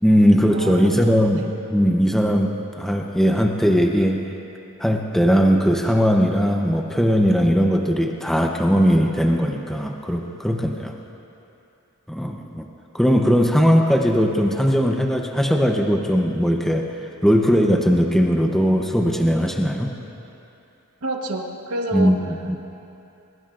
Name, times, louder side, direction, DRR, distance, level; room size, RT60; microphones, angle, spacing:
voice 1, 0.0-1.4 1.7-4.2 4.8-10.9 12.1-12.7 12.9-16.8 17.2-19.9 21.9-22.6, equal, ahead, 1 dB, 0.7 m, -19 dB
voice 2, 0.5-1.5 21.0-22.1, right 2 dB, 85° right, 2 dB, 1.2 m, -29 dB
23.5 x 22.0 x 2.5 m, 2.9 s
head